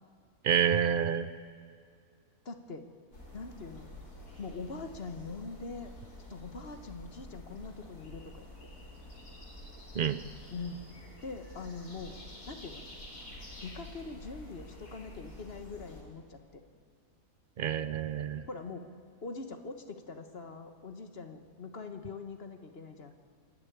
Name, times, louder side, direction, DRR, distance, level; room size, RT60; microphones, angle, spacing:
voice 1, 0.4-1.3 10.0-10.2 17.6-18.4, right 8 dB, 60° right, 12 dB, 0.5 m, -28 dB
voice 2, 2.4-2.9 3.3-3.9 4.4-5.9 6.3-8.5 10.5-10.8 11.2-12.2 12.5-12.8 13.6-16.6 18.5-18.9 19.2-23.1, left 4 dB, 40° left, 7 dB, 1.3 m, -43 dB
sound 1, 3.1-16.0, left 1 dB, 75° left, 4.3 m, -49 dB
26.0 x 11.5 x 9.4 m, 2.3 s
omnidirectional pair, 1.7 m